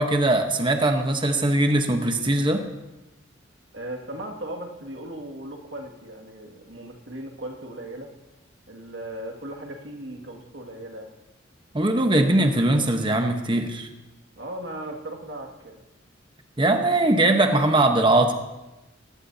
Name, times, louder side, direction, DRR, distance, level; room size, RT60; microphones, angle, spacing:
voice 1, 0.0-2.6 11.7-13.9 16.6-18.3, right 2 dB, 25° right, 5 dB, 1.0 m, -21 dB
voice 2, 3.7-8.1 8.7-11.1 14.4-15.8, right 1 dB, 75° right, 2 dB, 2.2 m, -37 dB
19.5 x 16.5 x 2.8 m, 1.0 s
head